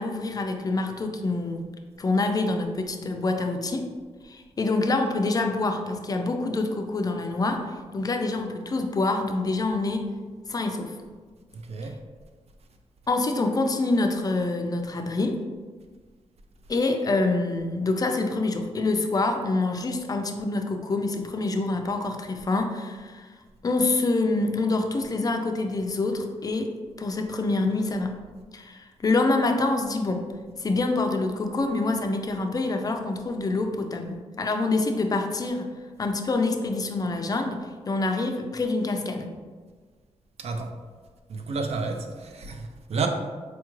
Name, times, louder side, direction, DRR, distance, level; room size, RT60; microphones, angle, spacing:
voice 1, 0.0-1.6 2.0-3.9 4.2-10.1 10.5-10.9 13.1-15.4 16.7-23.3 23.6-28.1 28.5-30.2 30.6-35.7 36.0-37.6 37.9-39.3, left 2 dB, 30° left, 4 dB, 0.4 m, -26 dB
voice 2, 11.5-11.9 40.4-40.7 41.3-43.1, right 4 dB, 60° right, 5 dB, 0.4 m, -31 dB
4.3 x 2.3 x 3.0 m, 1.5 s
wide cardioid pair, 115°, 12 cm